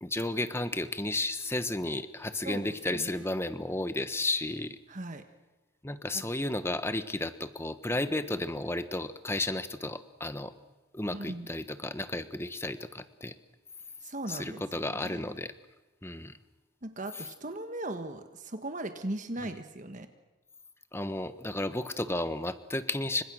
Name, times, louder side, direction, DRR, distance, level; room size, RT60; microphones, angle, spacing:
voice 1, 0.0-4.8 5.8-10.5 10.9-13.3 14.3-15.5 16.0-16.3 19.4-19.5 20.9-23.2, left 2 dB, 10° left, 12 dB, 1.1 m, -33 dB
voice 2, 2.4-3.2 4.9-5.2 6.1-6.2 11.1-11.5 14.0-15.3 16.8-20.1, right 1 dB, 35° right, 8 dB, 1.4 m, -38 dB
29.5 x 25.0 x 6.4 m, 1.1 s
head